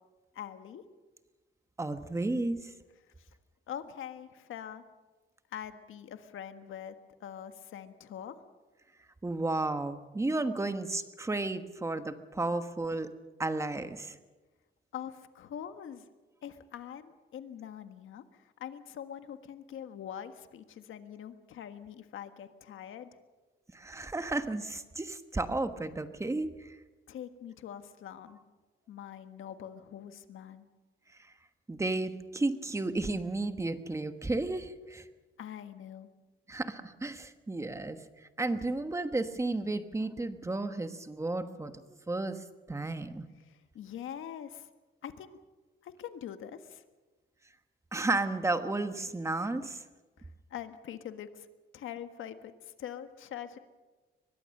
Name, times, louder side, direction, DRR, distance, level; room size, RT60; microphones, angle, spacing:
voice 1, 0.3-0.8 3.2-3.3 3.7-4.8 5.5-6.9 7.2-8.4 14.9-16.1 16.4-23.2 27.1-28.4 28.9-30.6 35.4-36.1 43.4-44.7 45.0-45.4 45.8-46.8 50.2-51.5 51.7-53.6, left 9 dB, 75° left, 9 dB, 1.5 m, -44 dB
voice 2, 1.8-2.7 9.2-13.1 13.4-14.2 23.7-26.8 31.7-35.1 36.5-41.7 42.1-43.3 47.9-49.8, right 2 dB, 15° right, 9 dB, 1.3 m, -33 dB
23.5 x 21.0 x 6.6 m, 1.2 s
cardioid pair, 145°, 21 cm